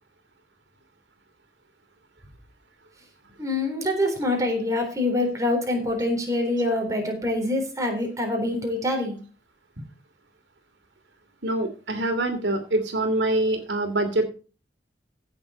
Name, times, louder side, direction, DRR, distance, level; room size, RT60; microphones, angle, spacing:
voice 1, 3.4-9.2, left 1 dB, 20° right, 2 dB, 3.8 m, -25 dB
voice 2, 11.4-14.3, right 1 dB, 90° right, 6 dB, 2.7 m, -25 dB
16.0 x 7.2 x 4.2 m, 0.34 s
head